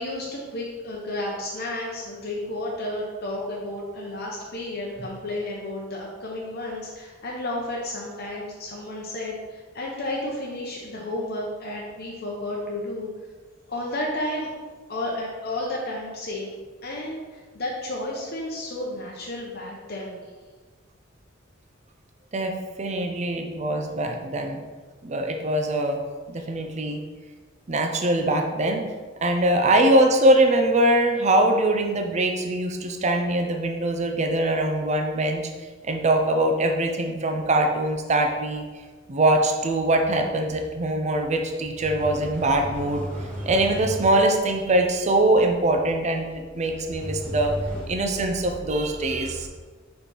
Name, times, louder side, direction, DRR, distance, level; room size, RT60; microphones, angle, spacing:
voice 1, 0.0-13.1 13.7-14.5 14.9-16.5 16.8-20.2 26.4-26.5, left 1 dB, 55° left, -3 dB, 0.8 m, -32 dB
voice 2, 22.8-24.6 25.0-26.0 26.3-27.0 27.7-28.8 29.2-35.4 35.8-38.6 39.1-47.5 47.9-49.5, right 1 dB, 35° right, 3 dB, 0.6 m, -22 dB
sound 1, 41.7-44.3 47.0-47.9, equal, 10° left, 1.7 m, -34 dB
5.2 x 4.5 x 4.2 m, 1.4 s
head